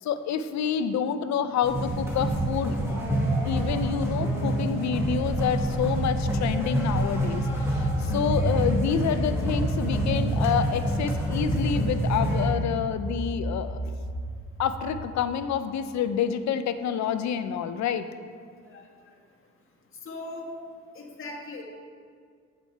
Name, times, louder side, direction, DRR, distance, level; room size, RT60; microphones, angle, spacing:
voice 1, 0.0-2.7 3.4-13.8 14.6-18.1, left 8 dB, 65° left, 11 dB, 0.6 m, -28 dB
sound 1, 1.6-12.5, right 1 dB, 10° right, 2.0 m, -27 dB
sound 2, 7.3-15.0, right 1 dB, 25° right, 2.4 m, -34 dB
voice 2, 20.0-20.5 20.9-21.6, left 2 dB, 45° left, -2 dB, 1.7 m, -39 dB
8.4 x 7.1 x 4.6 m, 2.1 s
cardioid pair, 90°, 30 cm